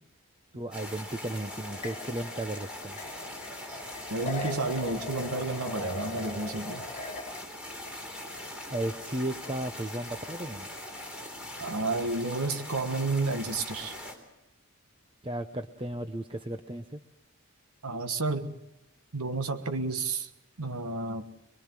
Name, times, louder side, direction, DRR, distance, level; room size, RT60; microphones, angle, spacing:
voice 1, 0.5-3.0 8.7-10.7 15.2-17.0, right 1 dB, 25° right, 7 dB, 0.8 m, -35 dB
sound 1, 0.7-14.2, left 1 dB, 5° right, 3.7 m, -41 dB
sound 2, 1.5-7.4, left 2 dB, 30° left, 1.5 m, -40 dB
voice 2, 4.1-6.8 11.6-13.9 17.8-18.6 19.1-20.3 20.6-21.2, right 3 dB, 85° right, 7 dB, 1.4 m, -31 dB
23.0 x 22.5 x 7.6 m, 0.90 s
head